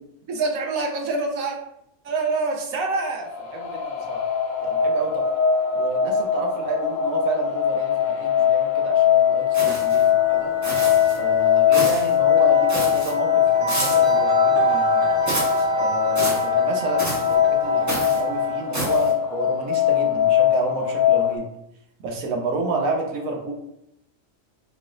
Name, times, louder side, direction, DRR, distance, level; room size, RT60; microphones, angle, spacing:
voice 1, 0.3-1.5 2.0-4.3 4.6-5.2 5.7-10.5 11.1-15.1 15.8-21.5 22.0-23.5, right 3 dB, 90° right, 0 dB, 1.2 m, -29 dB
sound 1, 3.2-21.4, left 9 dB, 50° left, 0.5 m, -21 dB
sound 2, 9.3-18.8, right 5 dB, 60° right, 1.4 m, -28 dB
sound 3, 9.5-10.1 10.6-11.2 11.7-12.1 12.7-13.1 13.7-14.1 15.3-15.6 16.2-16.5 17.0-17.3 17.9-18.2 18.7-19.1, equal, 15° right, 0.9 m, -29 dB
3.7 x 3.5 x 2.5 m, 0.79 s
omnidirectional pair, 1.4 m